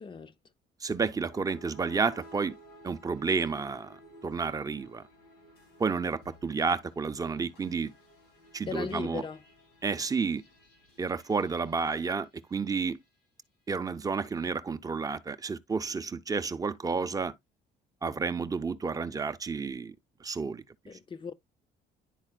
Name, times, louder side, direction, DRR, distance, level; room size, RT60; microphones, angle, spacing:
voice 1, 0.0-0.3 8.7-9.4 20.9-21.3, left 5 dB, 30° left, 0.6 m, -37 dB
voice 2, 0.8-2.6 2.8-4.0 4.2-5.0 5.8-7.9 8.5-9.2 9.8-10.4 11.0-13.0 13.7-17.3 18.0-19.9 20.2-20.6, right 5 dB, 20° right, 0.6 m, -31 dB
sound 1, 0.9-13.2, equal, 85° left, 3.2 m, -55 dB
11.0 x 4.1 x 2.2 m
cardioid pair, 110°, 17 cm